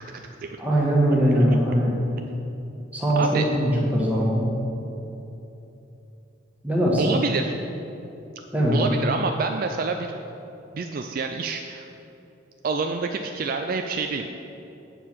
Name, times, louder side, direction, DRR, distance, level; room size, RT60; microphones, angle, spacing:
voice 1, 0.6-1.9 2.9-4.5 6.6-7.1 8.5-8.8, equal, 10° right, -5 dB, 1.5 m, -21 dB
voice 2, 3.2-3.5 7.0-7.5 8.7-10.2 10.7-11.9 12.6-14.3, right 4 dB, 45° right, 5 dB, 0.3 m, -27 dB
8.2 x 4.6 x 7.3 m, 2.9 s
head